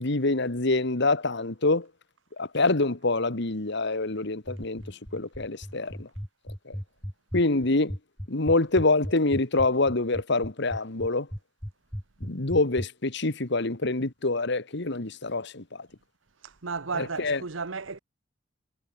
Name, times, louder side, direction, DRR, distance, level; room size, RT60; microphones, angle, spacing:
voice 1, 0.0-1.9 2.4-6.1 6.7-6.8 7.3-8.0 8.3-11.3 12.2-15.9 16.9-17.4, left 2 dB, 65° left, 1.8 m, -26 dB
sound 1, 4.5-12.9, equal, 5° left, 1.4 m, -35 dB
voice 2, 16.4-18.0, right 4 dB, 85° right, 1.2 m, -34 dB
head